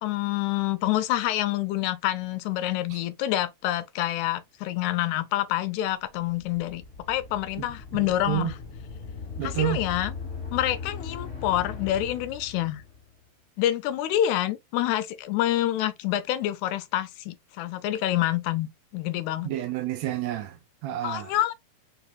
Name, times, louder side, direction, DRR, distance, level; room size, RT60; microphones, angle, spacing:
voice 1, 0.0-8.6 9.4-10.1 10.5-12.8 13.6-19.5 21.0-21.5, left 13 dB, 80° left, 1.9 m, -27 dB
sound 1, 6.2-13.1, left 5 dB, 40° left, 1.1 m, -38 dB
voice 2, 9.4-9.8 19.4-20.5 20.8-21.3, right 13 dB, 80° right, 1.8 m, -29 dB
4.5 x 2.8 x 2.3 m
omnidirectional pair, 3.4 m